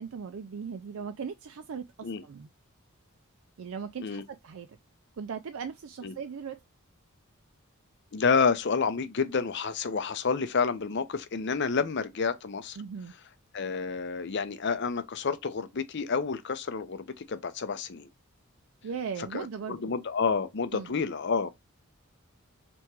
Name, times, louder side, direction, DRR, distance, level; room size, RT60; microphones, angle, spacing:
voice 1, 0.0-2.5 3.6-4.7 5.2-6.6 12.8-13.1 18.8-19.8 20.7-21.0, right 6 dB, 75° right, 0.4 m, -38 dB
voice 2, 8.1-12.8 13.5-18.1 19.3-21.5, left 5 dB, 55° left, 0.6 m, -29 dB
3.5 x 3.0 x 4.5 m
head